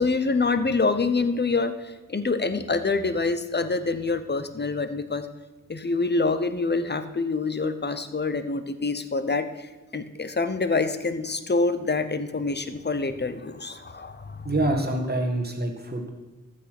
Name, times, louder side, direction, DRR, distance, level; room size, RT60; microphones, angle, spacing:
voice 1, 0.0-5.3 5.7-14.5, left 3 dB, 35° left, 11 dB, 0.8 m, -26 dB
voice 2, 14.4-16.1, right 1 dB, 30° right, 3 dB, 1.9 m, -26 dB
14.0 x 6.6 x 6.0 m, 1.2 s
wide cardioid pair, 95°, 31 cm